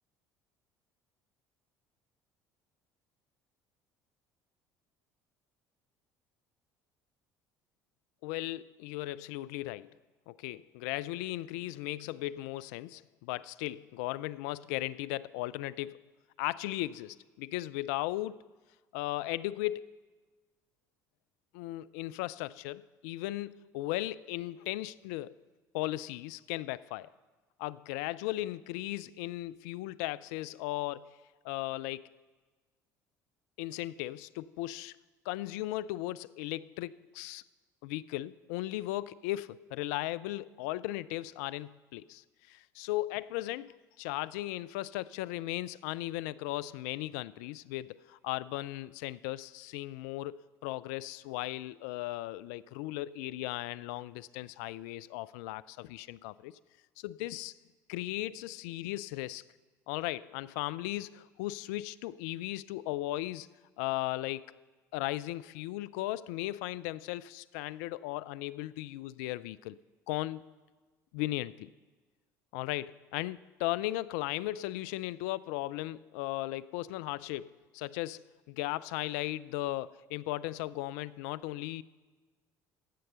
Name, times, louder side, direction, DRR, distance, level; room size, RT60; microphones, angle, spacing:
voice 1, 8.2-9.9 10.3-16.0 16.4-18.4 18.9-19.9 21.5-25.3 25.7-27.1 27.6-31.2 31.4-32.0 33.6-34.9 35.3-37.4 37.8-56.5 57.0-57.5 57.9-59.4 59.9-63.5 63.8-64.4 64.9-69.8 70.1-70.4 71.1-71.7 72.5-81.8, left 17 dB, 70° left, 19 dB, 0.3 m, -37 dB
11.5 x 7.7 x 6.7 m, 1.3 s
hypercardioid pair, 65°, 9 cm